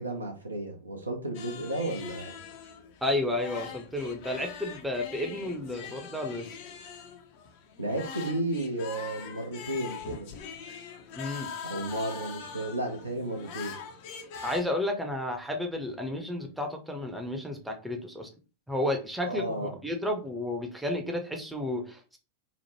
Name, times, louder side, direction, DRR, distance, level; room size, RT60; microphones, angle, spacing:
voice 1, 0.0-2.3 7.8-10.3 11.2-11.3 11.7-13.8 19.2-19.7, right 1 dB, 80° right, 0.6 m, -33 dB
sound 1, 1.3-14.6, left 6 dB, 50° left, 0.5 m, -43 dB
voice 2, 3.0-6.5 11.1-11.5 14.4-18.3 18.7-22.2, left 1 dB, 5° right, 0.6 m, -32 dB
2.9 x 2.1 x 3.0 m
figure-of-eight pair, 90°, 0 cm